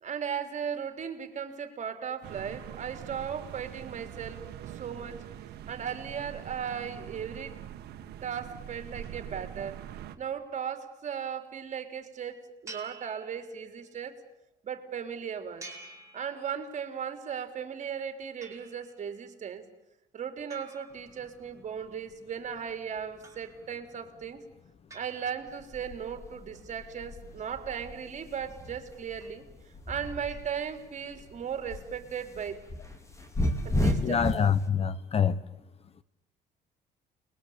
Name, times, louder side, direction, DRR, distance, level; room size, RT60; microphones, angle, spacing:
voice 1, 0.0-5.2 5.7-7.5 8.2-9.8 10.2-14.1 14.6-15.7 16.1-19.6 20.1-24.4 24.9-29.4 29.9-32.6 33.6-34.3, right 7 dB, 45° right, 3.9 m, -37 dB
sound 1, 2.2-10.2, right 10 dB, 75° right, 2.0 m, -43 dB
sound 2, 12.7-13.9 15.6-16.9 18.4-19.1 20.5-21.6 23.2-23.9 24.9-25.8, right 3 dB, 20° right, 6.5 m, -50 dB
sound 3, 25.5-30.8 31.1-34.6, left 1 dB, 15° left, 4.5 m, -33 dB
voice 2, 34.0-35.4, left 7 dB, 35° left, 1.2 m, -25 dB
29.5 x 22.5 x 8.8 m
cardioid pair, 110°, 17 cm